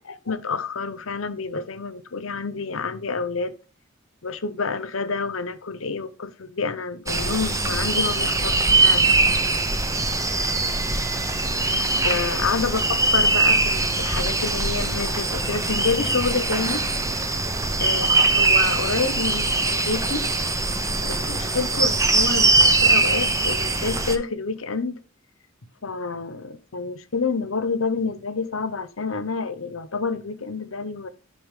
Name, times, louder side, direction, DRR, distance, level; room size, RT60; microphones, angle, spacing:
voice 1, 0.3-3.5 4.2-9.2 11.9-16.8 17.8-20.3 21.0-25.0 25.8-31.1, left 4 dB, 85° left, 0.9 m, -28 dB
sound 1, 7.1-24.2, right 3 dB, 15° right, 0.9 m, -22 dB
10.5 x 5.7 x 3.6 m
head